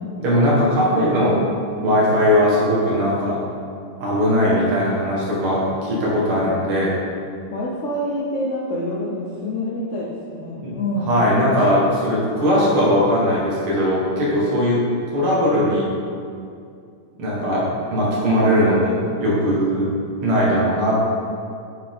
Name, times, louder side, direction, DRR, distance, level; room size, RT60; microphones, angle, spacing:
voice 1, 0.2-1.4 1.8-3.4 4.0-7.0 10.6-10.7 11.1-14.8 15.1-15.9 17.2-19.9 20.2-21.0, equal, 85° right, -6 dB, 2.4 m, -19 dB
voice 2, 7.5-11.1, left 1 dB, 70° left, -6 dB, 0.7 m, -27 dB
8.5 x 4.8 x 3.6 m, 2.4 s
omnidirectional pair, 2.3 m